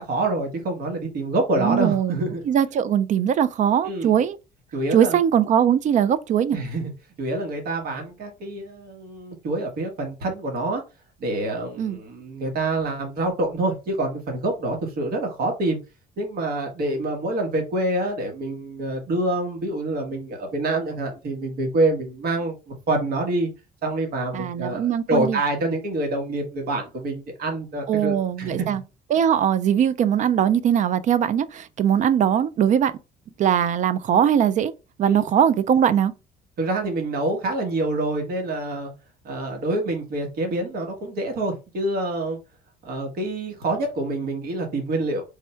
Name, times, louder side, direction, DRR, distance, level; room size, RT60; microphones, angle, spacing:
voice 1, 0.0-2.4 3.9-4.1 4.7-5.2 6.5-6.9 7.2-10.8 11.2-15.8 16.2-23.5 23.8-28.7 35.0-35.2 36.6-38.9 39.2-42.4 42.8-45.2, right 2 dB, 65° right, 1.4 m, -26 dB
voice 2, 1.6-2.2 2.5-4.4 4.9-6.6 11.8-12.0 24.3-25.4 27.9-28.8 29.1-32.9 33.4-34.7 35.0-36.1, right 9 dB, 45° right, 0.4 m, -20 dB
3.5 x 2.2 x 4.3 m
cardioid pair, 110°, 17 cm